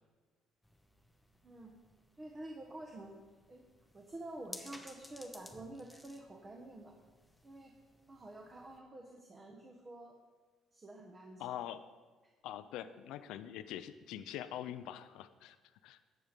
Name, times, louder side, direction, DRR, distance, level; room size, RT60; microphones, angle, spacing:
sound 1, 0.6-8.8, left 1 dB, 5° left, 0.9 m, -57 dB
voice 1, 2.2-3.2 3.5-3.6 3.9-7.0 7.4-7.7 8.1-10.2 10.7-11.5, right 1 dB, 25° right, 1 dB, 1.3 m, -49 dB
voice 2, 11.4-12.0 12.4-15.6 15.8-16.0, left 11 dB, 80° left, 12 dB, 0.6 m, -44 dB
13.5 x 8.0 x 5.3 m, 1.4 s
cardioid pair, 125°, 0 cm